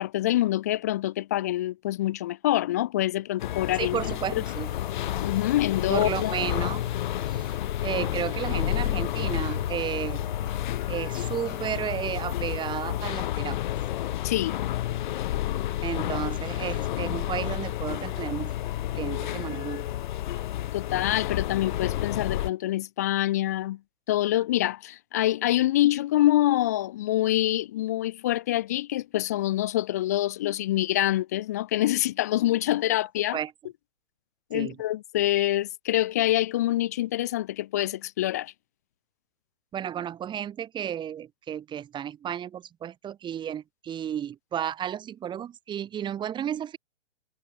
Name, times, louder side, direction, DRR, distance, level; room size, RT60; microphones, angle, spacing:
voice 1, 0.0-4.0 4.3-4.4 5.2-6.4 14.2-14.6 20.7-23.8 24.1-33.4 34.5-38.5, left 14 dB, 15° left, 0.6 m, -26 dB
sound 1, 3.4-22.5, left 13 dB, 40° left, 2.9 m, -30 dB
voice 2, 3.8-4.7 5.9-6.8 7.3-7.5 7.8-10.3 10.9-13.6 15.8-18.5 18.9-19.9 33.3-33.5 34.5-34.8 39.7-46.8, right 9 dB, 10° right, 5.6 m, -33 dB
sound 2, 4.1-13.1, left 6 dB, 80° left, 4.5 m, -41 dB
hypercardioid pair, 160°, 38 cm